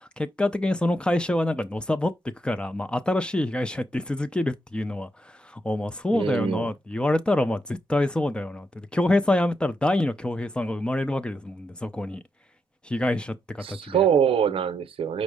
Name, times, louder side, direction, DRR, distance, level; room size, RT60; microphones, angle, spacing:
voice 1, 0.2-2.1 2.4-8.7 8.9-12.2 12.8-14.1, left 1 dB, 10° left, 0.4 m, -26 dB
voice 2, 6.1-6.7 13.6-15.2, right 8 dB, 85° right, 0.6 m, -24 dB
5.3 x 2.0 x 4.8 m
wide cardioid pair, 150°, 9 cm